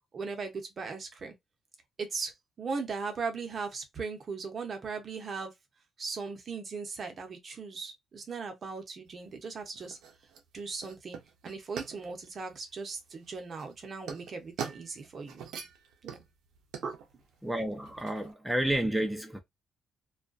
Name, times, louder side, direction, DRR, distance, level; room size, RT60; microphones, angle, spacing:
voice 1, 0.1-1.3 2.0-5.5 6.0-10.0 10.5-11.2 11.4-15.5 16.0-16.2 16.8-17.0 18.2-18.3, right 4 dB, 45° right, 0.7 m, -38 dB
sound 1, 9.0-18.3, right 7 dB, 85° right, 0.6 m, -45 dB
voice 2, 17.4-19.4, right 1 dB, ahead, 0.5 m, -30 dB
2.3 x 2.2 x 2.4 m
cardioid pair, 90°, 0 cm